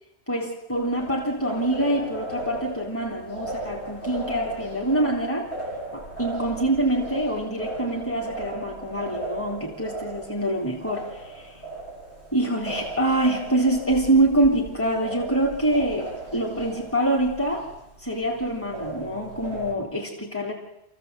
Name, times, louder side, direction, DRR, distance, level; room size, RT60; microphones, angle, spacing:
voice 1, 0.3-5.5 5.9-11.5 12.3-17.7 18.0-20.5, right 1 dB, 10° left, -2 dB, 3.3 m, -25 dB
sound 1, 0.7-19.7, right 2 dB, 85° left, 5.5 m, -36 dB
27.0 x 16.0 x 8.1 m, 0.86 s
omnidirectional pair, 1.1 m